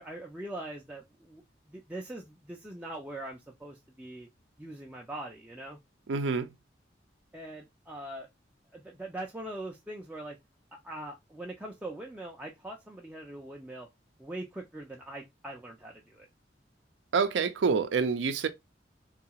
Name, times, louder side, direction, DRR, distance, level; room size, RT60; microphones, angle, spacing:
voice 1, 0.0-1.4 1.7-4.3 4.6-5.8 7.3-8.3 8.7-10.4 10.7-13.9 14.2-16.3, right 1 dB, 10° right, 0.3 m, -42 dB
voice 2, 6.1-6.5 17.1-18.5, right 5 dB, 80° right, 0.4 m, -27 dB
2.7 x 2.3 x 2.8 m
head